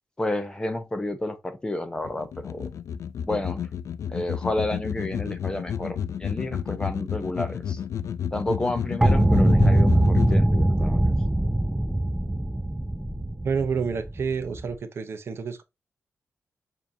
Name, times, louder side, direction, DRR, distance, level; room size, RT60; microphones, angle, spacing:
voice 1, 0.2-2.7 3.3-3.6 4.1-7.8 8.3-11.1, left 1 dB, 15° left, 0.7 m, -31 dB
sound 1, 2.0-10.4, left 8 dB, 85° left, 0.4 m, -31 dB
sound 2, 9.0-14.7, right 1 dB, 5° right, 0.3 m, -22 dB
voice 2, 13.4-15.6, right 5 dB, 55° right, 0.7 m, -29 dB
7.0 x 2.7 x 2.7 m
wide cardioid pair, 145°, 5 cm